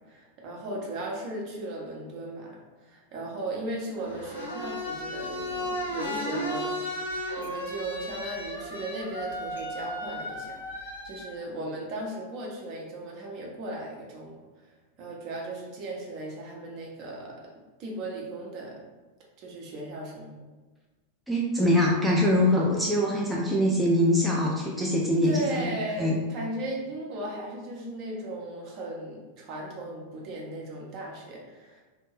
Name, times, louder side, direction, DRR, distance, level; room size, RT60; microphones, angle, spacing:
voice 1, 0.1-14.4 15.0-17.5 17.8-18.8 19.4-20.3 25.2-31.8, right 1 dB, 40° right, -2 dB, 0.7 m, -37 dB
sound 1, 3.9-11.2, left 1 dB, 75° left, 0.7 m, -34 dB
voice 2, 21.3-25.7 26.0-26.1, left 1 dB, 5° right, -5 dB, 0.4 m, -23 dB
2.5 x 2.1 x 3.1 m, 1.3 s
figure-of-eight pair, 90°, 0 cm